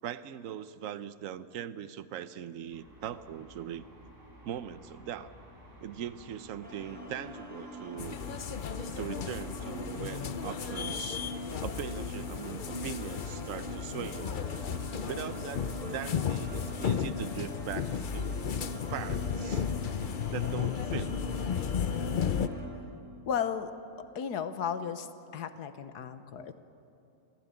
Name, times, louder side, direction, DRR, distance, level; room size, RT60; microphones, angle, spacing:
voice 1, 0.0-3.9 4.4-5.3 5.8-8.2 9.0-11.2 11.6-14.5 15.1-18.3 18.9-19.7 20.3-21.1 26.4-26.5, right 10 dB, 60° right, 14 dB, 1.0 m, -40 dB
sound 1, 2.7-20.5, equal, 25° right, 7.4 m, -56 dB
sound 2, 6.6-22.7, equal, 5° right, 5.1 m, -43 dB
sound 3, 8.0-22.5, left 7 dB, 65° left, 0.5 m, -34 dB
voice 2, 23.3-23.7 24.1-25.1 25.3-26.5, left 7 dB, 80° left, 10 dB, 1.5 m, -34 dB
27.0 x 15.0 x 9.0 m, 2.8 s
omnidirectional pair, 1.7 m